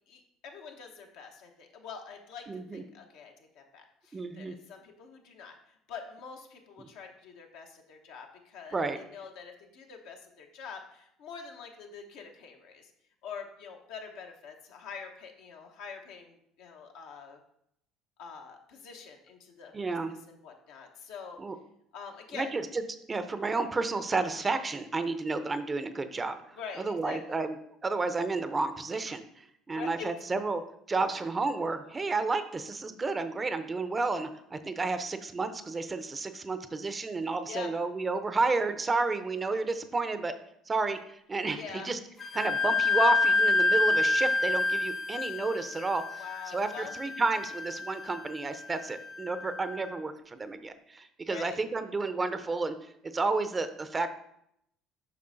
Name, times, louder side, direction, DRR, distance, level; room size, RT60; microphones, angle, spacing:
voice 1, 0.1-12.9 13.2-17.4 18.2-20.0 20.3-21.4 21.9-22.5 26.5-27.4 29.7-30.1 37.5-37.7 41.5-41.9 46.2-46.9 51.2-51.6, left 6 dB, 70° left, 2 dB, 0.9 m, -45 dB
voice 2, 2.5-2.8 4.1-4.5 8.7-9.0 19.7-20.1 21.4-21.6 22.3-22.8 23.1-27.6 27.8-30.6 30.9-40.3 40.7-42.0 42.3-54.1, right 3 dB, 25° right, 10 dB, 0.6 m, -31 dB
Wind instrument woodwind instrument, 42.2-49.6, left 3 dB, 35° left, 0.5 m, -28 dB
7.5 x 5.4 x 2.6 m, 0.74 s
hypercardioid pair, 65°, 0 cm